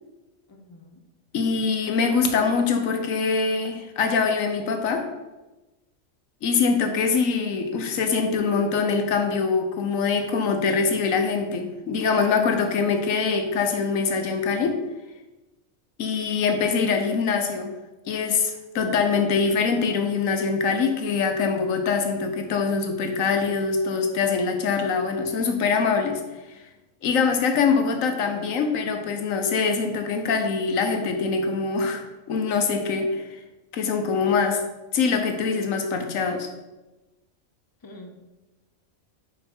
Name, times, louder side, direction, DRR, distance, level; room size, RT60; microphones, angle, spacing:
voice 1, 0.5-1.0 37.8-38.2, left 1 dB, 25° left, 4 dB, 0.5 m, -45 dB
voice 2, 1.3-5.1 6.4-14.8 16.0-17.7 18.1-26.2 27.0-33.4 33.7-34.6 34.9-36.5, left 5 dB, 75° left, 5 dB, 1.2 m, -23 dB
5.5 x 5.4 x 4.4 m, 1.1 s
omnidirectional pair, 1.4 m